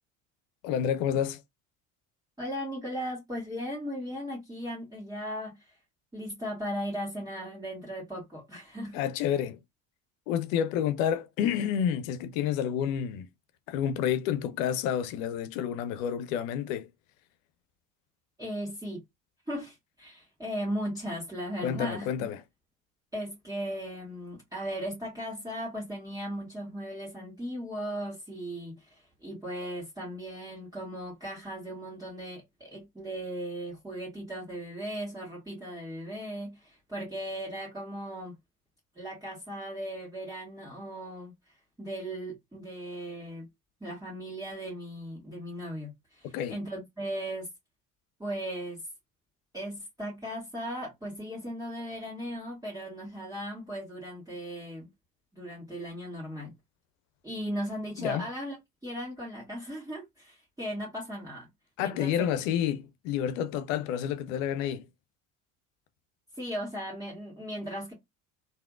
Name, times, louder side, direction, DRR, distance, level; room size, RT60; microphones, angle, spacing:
voice 1, 0.6-1.4 8.9-9.6 10.3-13.3 13.7-16.9 21.6-22.4 46.3-46.6 58.0-58.2 61.8-64.9, left 9 dB, 75° left, 0.6 m, -29 dB
voice 2, 2.4-5.8 6.1-9.0 18.4-19.0 19.5-22.1 23.1-38.4 39.0-41.3 41.8-43.5 43.8-47.5 48.2-48.8 49.5-54.9 55.3-56.5 57.2-58.6 58.8-61.5 61.8-62.3 66.3-67.9, equal, 10° right, 1.8 m, -37 dB
3.4 x 2.6 x 2.4 m
hypercardioid pair, 70°, 40 cm